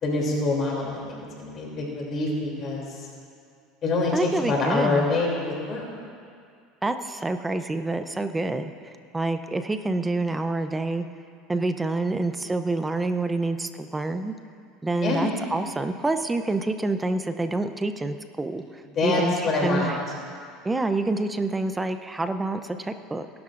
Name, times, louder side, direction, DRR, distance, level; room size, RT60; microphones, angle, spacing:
voice 1, 0.0-2.8 3.8-5.8 14.9-15.2 18.9-19.9, left 3 dB, 40° left, -2 dB, 3.0 m, -25 dB
voice 2, 4.1-5.1 6.8-11.1 11.5-14.3 14.8-20.0 20.6-23.4, right 2 dB, 15° right, 9 dB, 0.6 m, -27 dB
19.5 x 12.0 x 2.6 m, 2.3 s
supercardioid pair, 110°, 0 cm